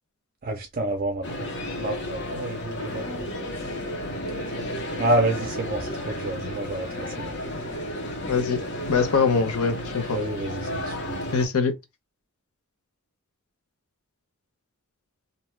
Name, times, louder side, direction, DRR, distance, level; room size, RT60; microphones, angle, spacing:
voice 1, 0.4-1.5 1.8-3.3 5.0-7.4 10.1-11.3, right 1 dB, 40° right, 0.4 m, -29 dB
sound 1, 1.2-11.5, left 1 dB, 55° left, 0.8 m, -33 dB
voice 2, 8.3-8.6 8.9-10.2 11.3-11.7, left 5 dB, 85° left, 0.7 m, -23 dB
2.6 x 2.2 x 3.0 m
head